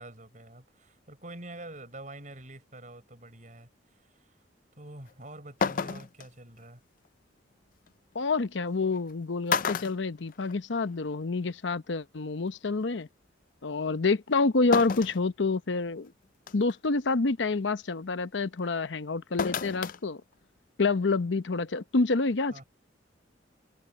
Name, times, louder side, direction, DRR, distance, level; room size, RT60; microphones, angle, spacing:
voice 1, 0.0-4.3 4.8-6.8 22.5-22.6, right 2 dB, 40° right, 7.0 m, -46 dB
sound 1, 5.1-5.2 5.6-6.3 7.9-8.0 8.9-9.1 9.5-10.9 11.2-11.3 12.5-12.6 14.7-15.2 15.8-15.9 16.5-16.8 19.4-20.0 20.3-20.4, left 6 dB, 45° left, 0.4 m, -30 dB
voice 2, 8.1-13.1 13.6-16.1 16.5-20.2 20.8-22.6, left 3 dB, 75° left, 0.8 m, -28 dB
head